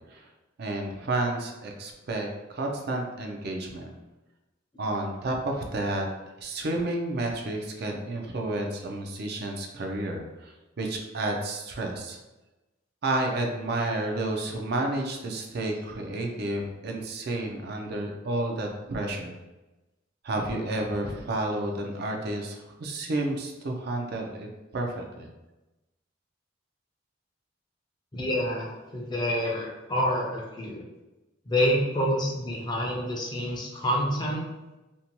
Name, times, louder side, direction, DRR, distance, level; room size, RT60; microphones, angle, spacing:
voice 1, 0.6-3.9 4.8-6.1 6.4-12.2 13.0-19.4 20.2-24.5 24.7-25.3, right 2 dB, 55° right, 2 dB, 0.4 m, -31 dB
voice 2, 28.1-30.9 31.5-34.4, equal, 25° left, -1 dB, 0.4 m, -27 dB
2.6 x 2.2 x 2.8 m, 1.0 s
head